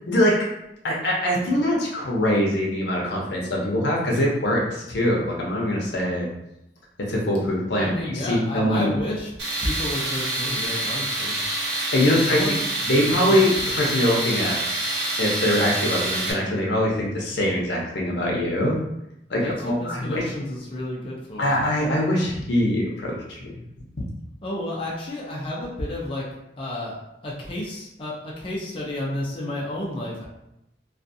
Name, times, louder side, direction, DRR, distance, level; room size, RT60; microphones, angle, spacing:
voice 1, 0.1-0.4 0.8-6.3 7.0-8.9 11.8-12.6 12.8-14.6 15.2-18.8 19.3-20.2 21.4-23.4, left 1 dB, 75° left, -2 dB, 0.7 m, -23 dB
voice 2, 7.7-9.3 9.6-11.4 12.2-12.6 13.3-13.5 19.4-21.5 24.4-26.3 26.6-27.0 27.2-30.3, left 1 dB, 30° left, -4 dB, 0.5 m, -31 dB
Tools, 9.4-16.3, right 1 dB, 75° right, 0.7 m, -27 dB
2.4 x 2.4 x 2.6 m, 0.84 s
head